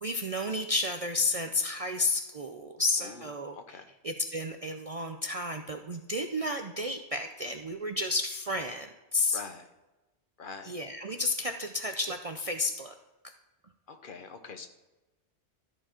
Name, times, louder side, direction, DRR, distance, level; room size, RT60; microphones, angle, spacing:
voice 1, 0.0-3.6 4.0-9.4 10.6-12.9 13.2-13.3, left 2 dB, 45° right, 5 dB, 0.5 m, -32 dB
voice 2, 3.0-3.9 9.3-9.7 10.4-10.8 13.9-14.7, left 5 dB, 55° left, 8 dB, 0.9 m, -44 dB
13.0 x 4.6 x 4.3 m, 1.1 s
omnidirectional pair, 1.2 m